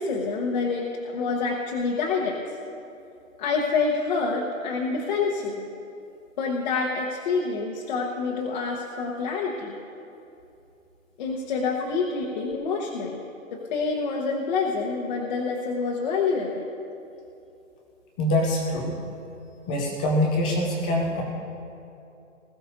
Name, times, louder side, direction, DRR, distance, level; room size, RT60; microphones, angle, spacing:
voice 1, 0.0-2.5 3.4-5.7 6.4-9.8 11.2-16.7, left 4 dB, 35° left, -2 dB, 1.2 m, -27 dB
voice 2, 18.2-19.0 19.7-21.2, left 1 dB, 5° left, -1 dB, 0.5 m, -24 dB
21.0 x 13.5 x 2.7 m, 2.7 s
hypercardioid pair, 155°, 39 cm